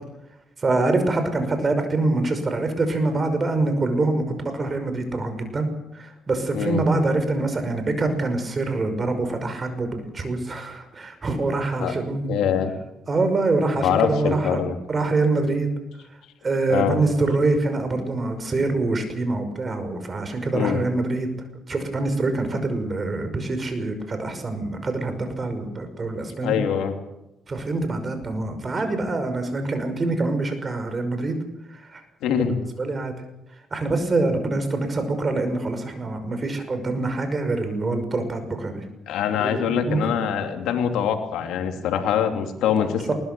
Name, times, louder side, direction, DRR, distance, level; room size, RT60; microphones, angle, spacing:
voice 1, 0.6-12.4 13.1-14.6 14.9-15.7 16.4-21.3 21.7-26.6 27.5-31.4 31.7-32.0 32.5-33.1 33.7-40.3 42.8-43.1, right 2 dB, 35° right, 8 dB, 5.6 m, -25 dB
voice 2, 12.2-12.7 13.8-14.7 16.7-17.0 20.5-20.8 26.4-26.9 32.2-32.5 39.1-43.1, left 8 dB, 90° left, 5 dB, 2.9 m, -23 dB
21.5 x 20.0 x 7.0 m, 0.93 s
cardioid pair, 90°, 0 cm